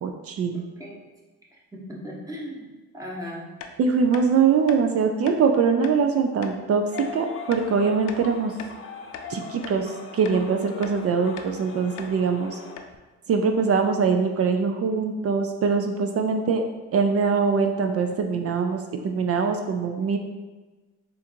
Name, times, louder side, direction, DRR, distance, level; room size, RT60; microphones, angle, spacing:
voice 1, 0.0-0.6 3.8-6.9 7.1-8.5 9.3-12.6 13.3-16.6 16.9-20.2, right 5 dB, 50° right, 5 dB, 0.4 m, -23 dB
voice 2, 0.5-0.9 1.5-3.5, equal, 10° right, -3 dB, 1.0 m, -38 dB
sound 1, 3.6-3.7 4.1-4.3 4.7-4.8 5.3-5.4 5.8-6.0 6.4-6.6 7.0-7.1 7.5-7.7 8.1-8.8 9.1-9.3 9.6-9.8 10.2-10.4 10.8-11.0 11.4-11.5 12.0-12.1 12.4-12.5 12.8-13.0, left 7 dB, 90° left, 0.5 m, -40 dB
sound 2, 6.9-12.8, left 5 dB, 45° left, 0.6 m, -40 dB
3.7 x 2.6 x 4.4 m, 1.2 s
cardioid pair, 90°, 30 cm